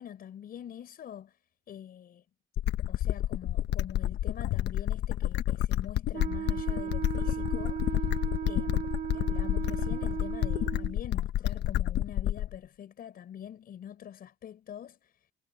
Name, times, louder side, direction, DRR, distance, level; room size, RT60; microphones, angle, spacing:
voice 1, 0.0-1.4 1.7-2.2 2.9-8.2 8.5-15.1, left 9 dB, 55° left, 5.2 m, -45 dB
sound 1, 2.6-12.6, left 13 dB, 75° left, 1.2 m, -29 dB
Wind instrument woodwind instrument, 6.1-11.0, right 10 dB, 45° right, 0.6 m, -36 dB
cardioid pair, 125°, 18 cm